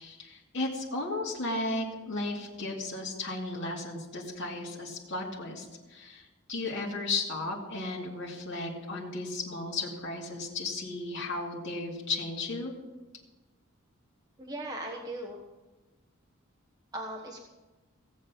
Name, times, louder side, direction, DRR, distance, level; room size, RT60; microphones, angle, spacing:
voice 1, 0.0-12.7, left 2 dB, 55° left, -3 dB, 2.7 m, -35 dB
voice 2, 14.4-15.4 16.9-17.4, right 1 dB, 20° right, 0 dB, 1.2 m, -38 dB
17.0 x 7.4 x 7.0 m, 1.2 s
head